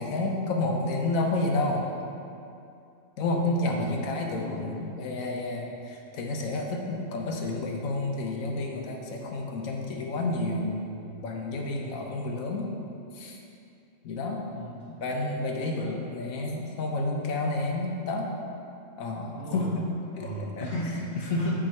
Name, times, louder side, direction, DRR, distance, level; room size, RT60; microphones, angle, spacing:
voice 1, 0.0-1.9 3.2-10.9 11.2-12.7 13.1-13.4 14.0-14.4 15.0-18.3 19.0-19.8 20.1-20.7 21.3-21.5, left 2 dB, 90° left, 0 dB, 1.2 m, -30 dB
voice 2, 3.7-4.7 11.7-12.0 14.5-15.0 15.5-16.0 19.3-19.7 20.2-21.5, equal, 45° left, -8 dB, 1.0 m, -36 dB
8.8 x 3.7 x 4.4 m, 2.6 s
omnidirectional pair, 1.4 m